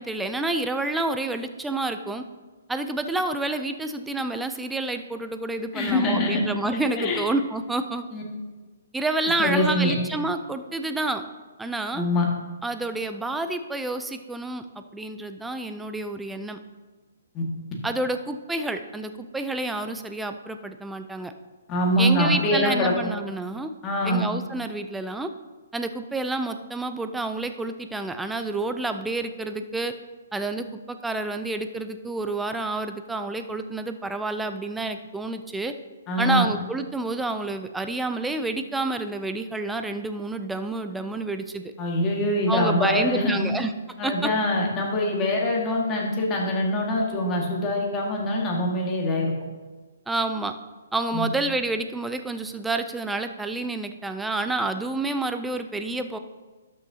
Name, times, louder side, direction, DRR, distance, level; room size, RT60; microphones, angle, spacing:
voice 1, 0.0-2.2 2.7-8.0 8.9-11.2 11.6-12.1 12.6-14.6 14.9-16.6 17.8-21.3 22.0-23.7 24.0-25.3 25.7-29.9 30.3-35.7 36.2-41.7 42.5-43.7 44.0-44.1 50.1-50.5 50.9-56.2, right 2 dB, 5° right, 8 dB, 0.4 m, -29 dB
voice 2, 5.7-6.4 6.7-7.2 8.1-8.2 9.4-10.0 11.9-12.3 17.3-17.4 21.7-22.9 23.8-24.2 36.1-36.5 41.8-43.4 44.0-49.3 51.1-51.3, left 1 dB, 20° left, -1 dB, 1.8 m, -24 dB
12.0 x 6.3 x 2.8 m, 1.3 s
hypercardioid pair, 150°, 0 cm